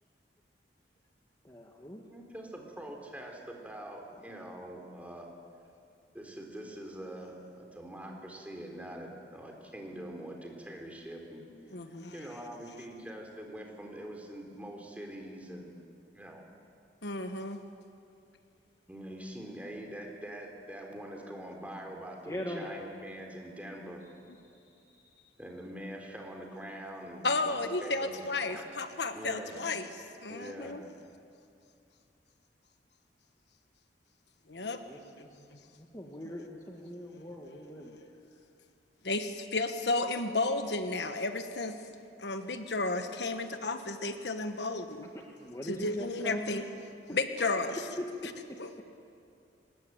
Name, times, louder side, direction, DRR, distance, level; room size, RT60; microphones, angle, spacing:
voice 1, 1.4-2.0 4.2-4.5 22.2-22.7 24.8-25.0 34.6-35.4 35.8-38.1 45.4-46.6 47.1-47.2 48.0-48.3, left 1 dB, 20° left, 0 dB, 1.8 m, -41 dB
voice 2, 2.1-5.3 6.1-11.4 12.1-15.7 16.1-16.5 18.9-24.0 25.4-28.6 29.1-29.6 30.3-30.8, right 1 dB, 10° right, 1 dB, 3.8 m, -44 dB
voice 3, 11.7-12.1 17.0-17.6 27.2-29.9 30.2-30.8 34.5-34.8 35.2-35.3 35.5-35.6 39.0-41.8 42.2-45.1 45.7-46.6 47.1-47.8 48.6-48.7, left 3 dB, 75° left, 7 dB, 1.4 m, -33 dB
24.0 x 21.0 x 9.2 m, 2.5 s
head